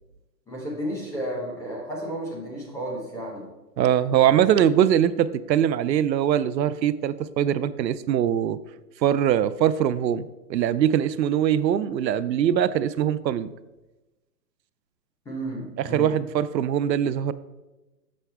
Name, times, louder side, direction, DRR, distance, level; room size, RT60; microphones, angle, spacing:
voice 1, 0.5-3.4 4.2-4.5 15.3-16.1, right 1 dB, 5° left, -4 dB, 0.8 m, -32 dB
voice 2, 3.8-8.6 9.0-13.5 15.8-17.3, right 10 dB, 90° right, 15 dB, 0.6 m, -22 dB
6.9 x 6.3 x 3.4 m, 1.1 s
hypercardioid pair, 155°, 49 cm